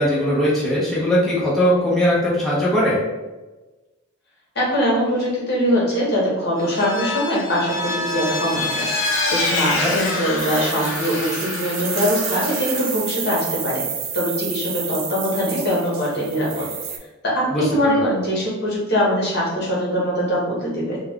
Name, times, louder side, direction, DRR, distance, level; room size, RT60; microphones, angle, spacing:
voice 1, 0.0-3.0 9.8-9.9 17.5-18.0, equal, ahead, -8 dB, 0.6 m, -20 dB
voice 2, 4.5-8.9 9.3-13.8 14.1-16.7 17.2-21.0, equal, 60° left, -5 dB, 1.0 m, -22 dB
Vehicle, 6.6-12.9, left 2 dB, 80° left, 0.7 m, -26 dB
sound 1, 10.4-17.0, right 7 dB, 80° right, 0.4 m, -30 dB
2.3 x 2.2 x 3.4 m, 1.1 s
head